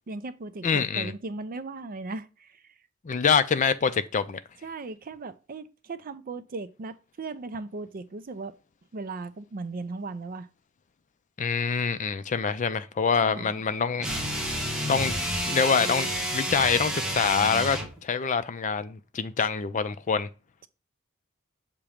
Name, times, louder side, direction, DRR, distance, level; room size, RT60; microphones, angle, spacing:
voice 1, 0.1-2.6 4.6-8.5 8.9-10.5 13.2-13.6, right 3 dB, 40° right, 0.5 m, -37 dB
voice 2, 0.6-1.1 3.0-4.4 11.4-14.1 14.8-15.2 15.4-20.3, left 6 dB, 35° left, 0.5 m, -25 dB
sound 1, 14.0-18.0, equal, 5° right, 1.2 m, -30 dB
7.0 x 3.0 x 4.9 m
head